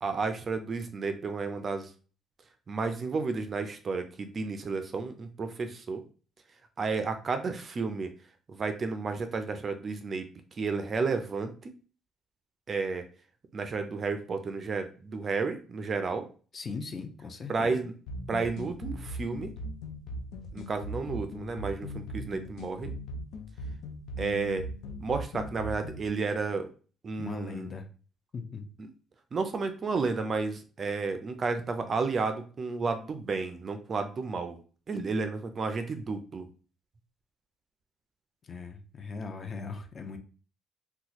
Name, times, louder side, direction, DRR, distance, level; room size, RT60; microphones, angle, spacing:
voice 1, 0.0-1.9 2.7-6.0 6.8-8.1 8.5-10.3 10.5-11.7 12.7-13.0 13.5-16.3 17.5-17.9 18.3-19.5 20.5-22.9 24.2-24.7 25.0-26.7 27.0-27.7 28.8-28.9 29.3-34.6 34.9-36.5, right 4 dB, 30° right, 8 dB, 0.4 m, -32 dB
voice 2, 16.5-17.8 27.2-27.9 28.3-28.7 38.4-40.2, left 4 dB, 30° left, 6 dB, 0.5 m, -39 dB
sound 1, 18.1-26.1, left 1 dB, 90° left, 0.5 m, -39 dB
2.9 x 2.2 x 4.0 m, 0.38 s
cardioid pair, 160°, 0 cm